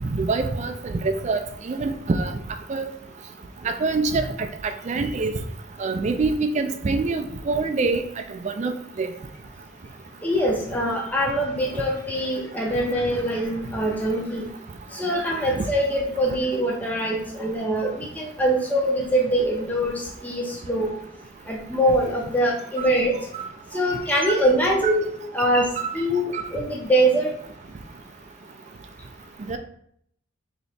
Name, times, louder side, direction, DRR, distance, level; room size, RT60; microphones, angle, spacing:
voice 1, 0.0-2.3 2.7-2.9 3.6-5.3 5.8-8.0 8.4-8.7 9.0-9.1 15.6-15.7 22.8-22.9 23.3-23.5 24.3-24.4 24.8-24.9 25.4-25.5 25.8-26.0 26.3-26.4 29.5-29.6, right 3 dB, 35° right, 7 dB, 0.3 m, -25 dB
voice 2, 10.2-14.5 14.9-20.9 21.5-23.1 23.7-25.1 25.3-25.7 25.9-27.3, right 1 dB, 10° left, -2 dB, 0.6 m, -23 dB
3.2 x 2.9 x 4.1 m, 0.70 s
head